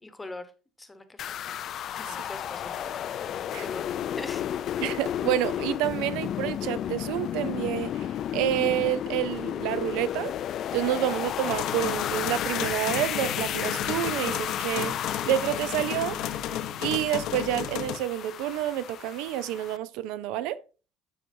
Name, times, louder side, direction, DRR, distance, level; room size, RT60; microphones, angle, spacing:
voice 1, 0.0-0.4 0.8-1.6 1.9-3.8 4.2-4.4, left 2 dB, 10° left, 1.0 m, -42 dB
sound 1, 1.2-19.8, left 10 dB, 45° left, 0.3 m, -33 dB
voice 2, 4.8-8.1 8.3-10.3 10.7-15.0 15.3-16.2 16.8-20.6, right 12 dB, 80° right, 0.5 m, -28 dB
sound 2, 11.5-18.0, left 10 dB, 70° left, 0.8 m, -33 dB
12.5 x 4.6 x 2.7 m
cardioid pair, 150°, 0 cm